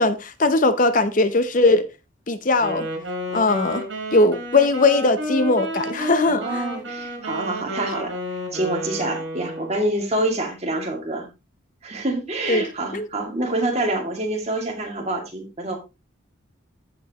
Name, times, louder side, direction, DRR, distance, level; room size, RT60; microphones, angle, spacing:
voice 1, 0.0-1.8 2.3-2.9 3.3-3.8 4.1-6.6 12.5-12.6 12.9-13.1, left 2 dB, 40° left, 0.7 m, -19 dB
Wind instrument woodwind instrument, 2.6-9.8, equal, 70° right, 3.9 m, -31 dB
voice 2, 6.3-8.1 8.5-11.3 11.8-15.8, right 2 dB, 35° right, 2.3 m, -26 dB
14.5 x 5.2 x 2.9 m
head